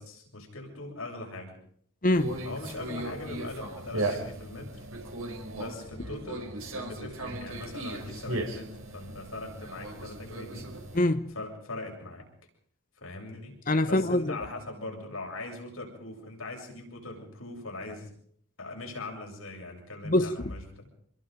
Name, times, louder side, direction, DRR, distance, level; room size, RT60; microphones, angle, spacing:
voice 1, 0.0-1.5 2.4-4.7 5.5-10.7 11.3-12.2 13.0-13.5 13.9-18.1 18.6-20.9, left 2 dB, 75° left, 7.6 m, -40 dB
voice 2, 2.0-2.4 10.9-11.3 13.7-14.4 20.0-20.4, left 1 dB, 40° left, 1.0 m, -24 dB
Conversation, 2.1-11.0, right 2 dB, 85° right, 4.9 m, -37 dB
27.0 x 22.5 x 5.3 m
head